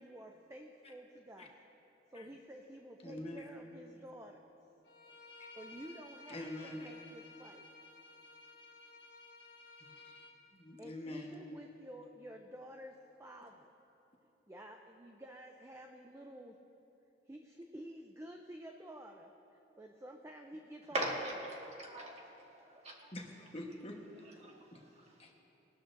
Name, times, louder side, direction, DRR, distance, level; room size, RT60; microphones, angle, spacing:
voice 1, 0.0-1.6 2.1-4.5 5.6-7.7 10.8-13.7 14.5-16.6 17.3-19.3 19.8-21.3, right 1 dB, 15° right, 3 dB, 0.5 m, -51 dB
voice 2, 3.0-3.5 5.4-5.5 6.3-6.9 9.9-10.2 10.5-11.3 23.1-24.8 25.2-25.3, left 1 dB, 30° left, 0 dB, 1.2 m, -46 dB
Bowed string instrument, 4.8-10.3, left 3 dB, 65° left, 1.6 m, -55 dB
voice 3, 20.9-21.4 21.7-23.1 24.4-25.3, right 1 dB, 35° right, -1 dB, 1.7 m, -41 dB
20.0 x 12.5 x 2.6 m, 3.0 s
head